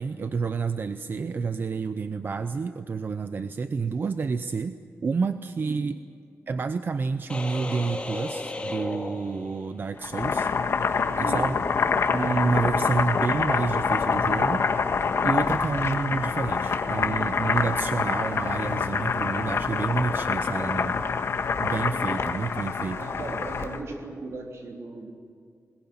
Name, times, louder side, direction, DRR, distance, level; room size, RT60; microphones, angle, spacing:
voice 1, 0.0-6.0 6.5-10.5 10.8-11.6 12.1-14.7 15.0-21.0 21.4-23.0, right 4 dB, 45° right, 11 dB, 0.6 m, -29 dB
sound 1, 7.3-9.9, left 2 dB, 25° left, 1.9 m, -34 dB
Boiling, 10.0-23.8, left 5 dB, 60° left, 1.4 m, -26 dB
voice 2, 11.2-11.5 22.9-25.1, right 3 dB, 75° right, 1 dB, 3.6 m, -37 dB
21.0 x 21.0 x 8.8 m, 2.2 s
wide cardioid pair, 145°, 5 cm